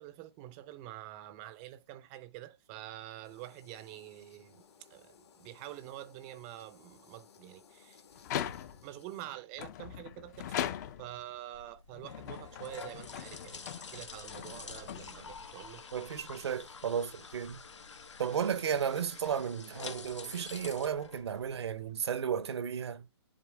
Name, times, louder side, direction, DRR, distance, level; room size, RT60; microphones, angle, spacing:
voice 1, 0.0-4.6 4.9-8.0 8.8-10.7 11.0-15.8, right 14 dB, 25° right, 0.5 m, -47 dB
sound 1, 3.2-9.2, left 6 dB, 65° left, 1.7 m, -61 dB
sound 2, 8.2-9.0 9.6-11.2 11.9-15.5, left 10 dB, 40° left, 0.6 m, -40 dB
sound 3, 11.5-21.9, left 5 dB, 85° left, 1.0 m, -48 dB
voice 2, 15.9-17.6 18.2-23.1, right 8 dB, 65° right, 0.7 m, -34 dB
11.0 x 4.1 x 2.2 m
hypercardioid pair, 135°, 15 cm